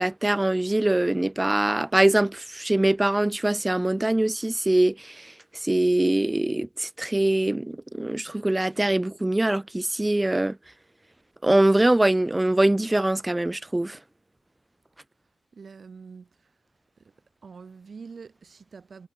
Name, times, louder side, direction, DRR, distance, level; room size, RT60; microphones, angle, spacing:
voice 1, 0.0-5.3 5.6-10.6 11.4-14.0, right 1 dB, 10° right, 0.4 m, -23 dB
voice 2, 15.5-16.5 17.0-17.1 17.4-19.1, right 5 dB, 30° right, 5.4 m, -45 dB
wide cardioid pair, 160°, 0 cm